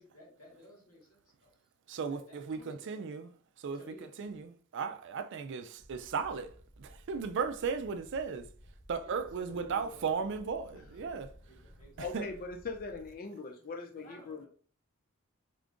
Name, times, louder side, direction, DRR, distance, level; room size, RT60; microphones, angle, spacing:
voice 1, 0.0-1.6 2.1-3.1 3.7-4.3 9.0-12.1 13.9-14.5, left 1 dB, 85° left, 1.7 m, -56 dB
voice 2, 1.9-3.3 3.6-8.5 8.9-11.3 12.0-12.3, right 5 dB, 55° right, 0.4 m, -36 dB
sound 1, 5.8-13.2, equal, 15° right, 0.9 m, -56 dB
voice 3, 12.0-14.5, left 4 dB, 40° left, 0.4 m, -41 dB
3.7 x 3.6 x 2.4 m
head